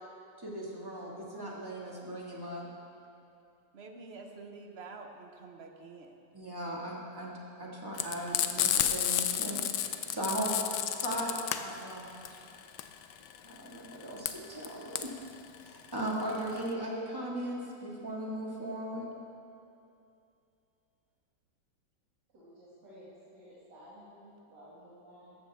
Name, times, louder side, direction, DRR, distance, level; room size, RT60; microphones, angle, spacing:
voice 1, 0.4-2.7 6.3-9.6 10.1-10.5 11.0-11.3 11.6-12.4 13.5-15.1 15.6-19.1, right 1 dB, 15° right, -4 dB, 1.8 m, -38 dB
voice 2, 3.7-6.2 10.9-11.0, right 3 dB, 45° right, 3 dB, 1.0 m, -48 dB
Frying (food), 7.9-16.7, left 10 dB, 85° left, 1.3 m, -31 dB
voice 3, 22.3-25.4, equal, 80° right, -9 dB, 2.8 m, -54 dB
14.0 x 13.5 x 3.5 m, 2.6 s
omnidirectional pair, 1.8 m